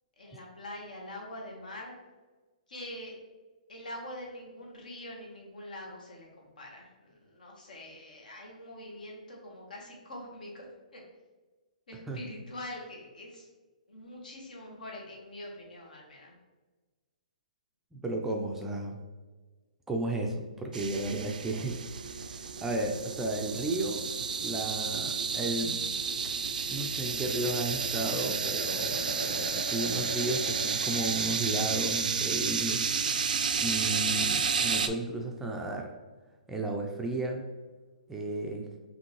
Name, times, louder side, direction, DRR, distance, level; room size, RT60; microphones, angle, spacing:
voice 1, 0.2-1.9 2.7-3.1 3.7-11.0 11.9-13.5 13.9-16.4, left 1 dB, 75° left, -1 dB, 1.5 m, -44 dB
voice 2, 17.9-19.0 19.9-21.8 22.2-24.1 24.4-25.8 26.7-32.8 33.6-35.9 36.5-37.5 38.1-38.7, right 2 dB, 5° right, 1 dB, 0.4 m, -33 dB
sound 1, 20.7-34.9, right 5 dB, 80° right, 0.4 m, -31 dB
5.1 x 2.8 x 3.1 m, 1.3 s
hypercardioid pair, 150°, 4 cm